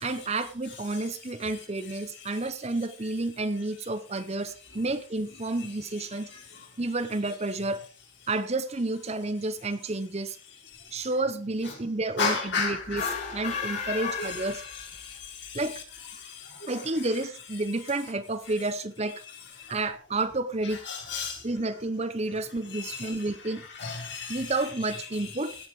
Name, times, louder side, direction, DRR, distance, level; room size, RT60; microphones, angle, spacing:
voice 1, 0.0-6.3 6.8-7.8 8.3-10.4 10.9-14.6 15.5-15.8 16.7-19.2 19.7-20.8 21.4-23.6 24.3-25.6, right 2 dB, 30° right, 0.8 m, -30 dB
voice 2, 12.2-13.1 14.0-14.4 14.7-14.8 15.5-15.6 16.6-16.7 20.9-21.4 22.7-23.2 23.7-24.5 25.1-25.3, left 4 dB, 55° left, 5.0 m, -32 dB
sound 1, 12.8-15.2, left 6 dB, 40° left, 4.8 m, -34 dB
17.0 x 7.4 x 4.8 m
head